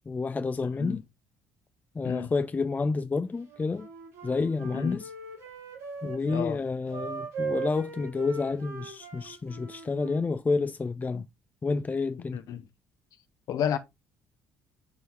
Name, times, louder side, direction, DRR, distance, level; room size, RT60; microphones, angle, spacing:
voice 1, 0.1-1.0 2.0-3.9 4.2-5.1 6.0-11.3 11.6-12.4, left 4 dB, 20° left, 0.6 m, -29 dB
voice 2, 0.6-1.0 2.0-2.3 4.6-5.0 6.0-6.6 11.1-11.2 12.3-12.7 13.5-13.8, left 9 dB, 55° left, 1.0 m, -32 dB
Wind instrument woodwind instrument, 3.5-6.4 6.9-10.3, right 5 dB, 75° right, 4.3 m, -39 dB
9.6 x 4.6 x 3.3 m
figure-of-eight pair, 50°, 7 cm